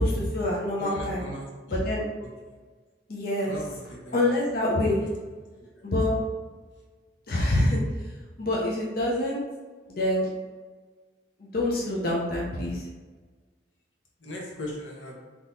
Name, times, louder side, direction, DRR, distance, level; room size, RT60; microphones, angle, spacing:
voice 1, 0.0-1.2 1.7-2.1 3.1-3.5 4.1-5.0 5.8-6.1 7.3-7.8 8.4-9.4 9.9-10.3 11.4-12.8, left 1 dB, 55° left, -4 dB, 0.6 m, -26 dB
voice 2, 0.8-1.8 3.4-4.3 14.2-15.1, left 1 dB, 90° left, -2 dB, 0.9 m, -38 dB
3.7 x 2.9 x 2.6 m, 1.4 s
head